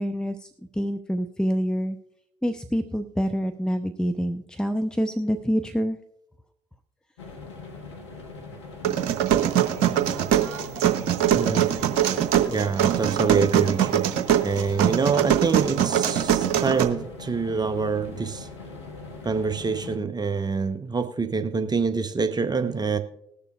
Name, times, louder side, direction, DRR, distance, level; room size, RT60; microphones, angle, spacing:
voice 1, 0.0-2.0 2.4-6.0, equal, 5° left, 0.7 m, -26 dB
sound 1, 7.2-20.0, left 3 dB, 85° left, 0.9 m, -41 dB
sound 2, 8.8-16.8, right 10 dB, 75° right, 0.9 m, -22 dB
voice 2, 11.3-11.8 12.5-14.0 14.4-18.5 19.2-23.0, right 5 dB, 30° right, 0.9 m, -26 dB
20.0 x 6.8 x 2.4 m
hypercardioid pair, 45°, 14 cm